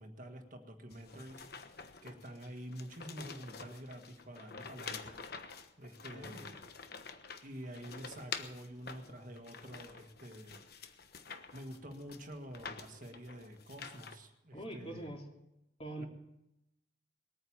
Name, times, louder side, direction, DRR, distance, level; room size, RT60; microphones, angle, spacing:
voice 1, 0.0-1.7 2.0-5.2 5.8-6.6 7.4-10.6 11.5-15.1 16.0-16.1, equal, 45° right, 5 dB, 1.6 m, -48 dB
sound 1, 0.9-14.2, left 5 dB, 60° left, 1.2 m, -48 dB
voice 2, 6.1-6.5 14.5-15.2 15.8-16.1, right 1 dB, 35° left, 1 dB, 2.9 m, -44 dB
20.5 x 9.4 x 7.2 m, 0.88 s
head